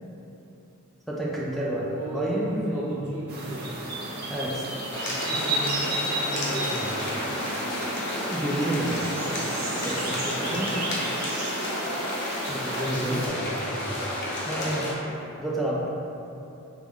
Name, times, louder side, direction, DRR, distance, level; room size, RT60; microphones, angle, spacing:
voice 1, 1.1-3.1 4.3-4.7 8.3-9.0 9.8-10.7 12.5-13.4 14.5-14.9 15.4-15.9, right 1 dB, ahead, -5 dB, 0.3 m, -29 dB
voice 2, 1.8-3.9 5.2-7.0 12.7-14.2, right 1 dB, 85° right, -4 dB, 0.7 m, -35 dB
sound 1, 3.3-13.3, right 1 dB, 45° right, 0.6 m, -32 dB
sound 2, 4.9-14.9, left 1 dB, 50° left, 0.7 m, -31 dB
4.6 x 2.1 x 3.5 m, 2.8 s
head